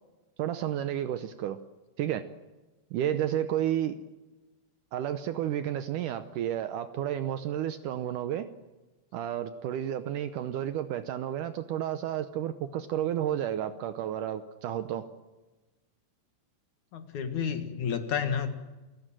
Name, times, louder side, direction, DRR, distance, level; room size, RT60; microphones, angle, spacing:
voice 1, 0.4-1.6 2.0-2.3 2.9-4.0 4.9-8.5 9.1-15.1, right 11 dB, 75° right, 10 dB, 2.2 m, -31 dB
voice 2, 16.9-18.6, left 7 dB, 60° left, 8 dB, 3.2 m, -31 dB
28.5 x 18.0 x 7.5 m, 1.2 s
omnidirectional pair, 4.1 m